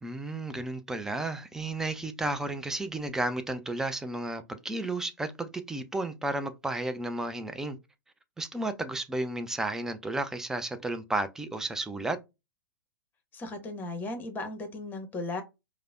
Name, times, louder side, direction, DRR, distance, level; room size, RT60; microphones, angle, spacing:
voice 1, 0.0-7.8 8.4-12.2, right 2 dB, 5° right, 0.3 m, -33 dB
voice 2, 13.3-15.4, left 2 dB, 15° left, 0.8 m, -36 dB
4.8 x 2.1 x 2.4 m
figure-of-eight pair, 105°, 12 cm